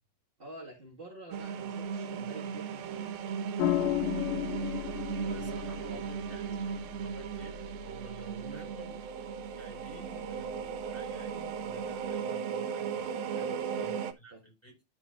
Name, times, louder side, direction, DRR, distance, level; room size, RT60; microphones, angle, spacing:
voice 1, 0.4-3.3 5.9-6.1 8.4-8.7 13.3-13.9 14.3-14.4, right 2 dB, 30° right, 1.0 m, -48 dB
sound 1, 1.3-14.1, right 6 dB, 85° right, 2.9 m, -36 dB
sound 2, 3.6-12.1, left 13 dB, 75° left, 2.3 m, -37 dB
voice 2, 5.2-13.3 13.8-14.8, right 3 dB, 5° left, 5.3 m, -52 dB
12.5 x 7.0 x 2.5 m
omnidirectional pair, 4.1 m